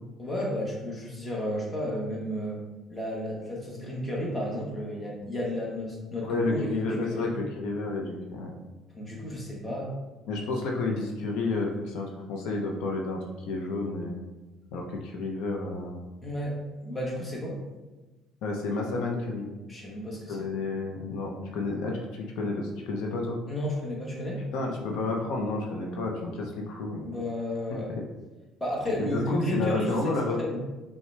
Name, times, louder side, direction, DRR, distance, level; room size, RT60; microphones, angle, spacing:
voice 1, 0.2-2.6 2.9-7.3 8.9-9.9 16.2-17.6 19.7-20.4 23.5-24.4 27.0-27.9 28.6-30.6, equal, 15° left, -3 dB, 1.1 m, -32 dB
voice 2, 6.2-8.5 10.3-14.2 14.7-16.0 18.4-19.5 20.3-23.4 24.5-27.0 29.0-30.4, left 3 dB, 80° left, 0 dB, 0.6 m, -30 dB
5.6 x 2.2 x 3.2 m, 1.2 s
cardioid pair, 115°, 0 cm